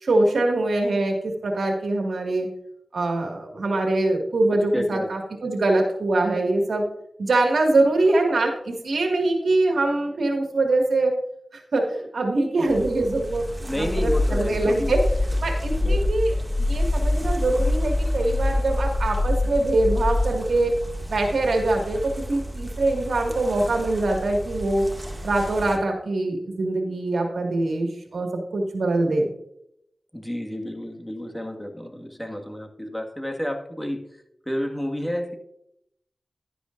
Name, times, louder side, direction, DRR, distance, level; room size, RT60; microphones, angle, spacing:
voice 1, 0.0-2.5 2.9-6.8 7.2-11.1 11.5-13.5 13.8-20.7 21.1-24.9 25.2-29.3, right 2 dB, 85° right, 2 dB, 2.0 m, -23 dB
voice 2, 4.7-5.1 13.6-14.9 15.8-16.1 30.1-34.1 34.5-35.4, equal, 10° left, 3 dB, 1.8 m, -30 dB
sound 1, 12.7-25.8, right 1 dB, 15° right, 2.1 m, -35 dB
sound 2, 13.9-20.3, left 2 dB, 25° left, 0.5 m, -24 dB
11.5 x 10.0 x 2.6 m, 0.75 s
cardioid pair, 40°, 0 cm